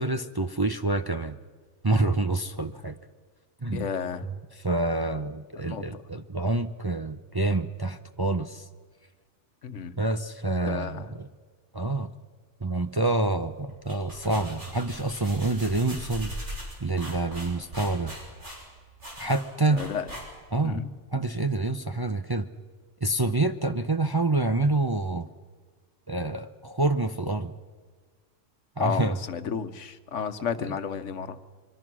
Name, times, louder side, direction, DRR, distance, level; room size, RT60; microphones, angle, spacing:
voice 1, 0.0-1.4 1.8-3.0 3.6-3.8 4.5-8.7 10.0-11.3 11.7-12.1 12.6-16.3 16.8-18.1 19.2-19.8 20.5-20.8 21.1-22.5 23.0-25.3 26.1-27.5 28.8-29.2 30.6-30.7, right 2 dB, 25° right, 8 dB, 0.5 m, -27 dB
voice 2, 3.7-4.3 5.6-6.0 9.6-9.9 10.6-11.1 19.7-20.1 20.6-20.9 28.8-31.4, left 7 dB, 80° left, 11 dB, 1.4 m, -32 dB
sound 1, 13.7-20.6, equal, 70° right, 6.3 m, -40 dB
25.0 x 23.5 x 6.2 m, 1.5 s
omnidirectional pair, 1.2 m